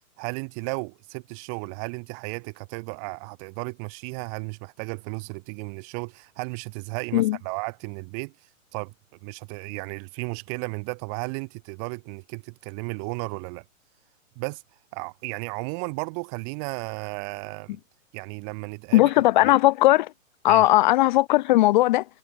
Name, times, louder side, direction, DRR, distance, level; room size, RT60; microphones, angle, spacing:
voice 1, 0.2-8.9 9.2-13.6 14.4-14.6 14.9-17.8 18.1-19.1 20.5-20.7, right 38 dB, 25° right, 1.4 m, -34 dB
voice 2, 18.9-20.1 20.4-22.0, left 17 dB, 35° left, 1.1 m, -18 dB
hypercardioid pair, 150°, 41 cm